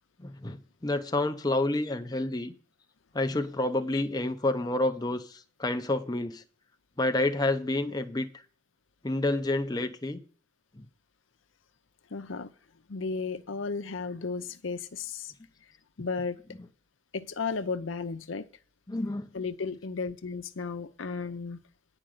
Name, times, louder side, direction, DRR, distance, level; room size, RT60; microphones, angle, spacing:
voice 1, 0.2-2.5 3.1-6.4 7.0-8.3 9.0-10.2 10.8-10.9 18.9-19.3, left 2 dB, 20° left, 0.7 m, -29 dB
voice 2, 12.1-12.5 12.9-15.3 16.0-16.4 17.1-18.5 19.3-21.6, left 4 dB, 80° left, 0.7 m, -34 dB
9.9 x 5.0 x 7.6 m
head